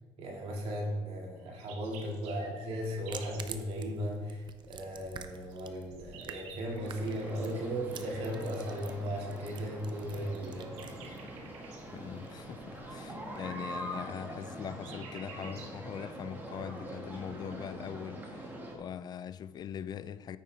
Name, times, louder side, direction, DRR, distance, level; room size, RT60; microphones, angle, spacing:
voice 1, 0.2-11.3, equal, 65° right, 2.1 m, -37 dB
sound 1, 1.4-3.5 5.5-7.5 10.2-11.8 14.2-15.8, right 5 dB, 85° right, 1.5 m, -51 dB
sound 2, 2.9-13.7, right 7 dB, 45° right, 0.7 m, -51 dB
sound 3, 6.6-18.8, right 1 dB, 20° right, 1.9 m, -44 dB
voice 2, 11.9-20.4, left 8 dB, 40° left, 0.4 m, -42 dB
9.2 x 8.9 x 3.3 m
cardioid pair, 105°, 11 cm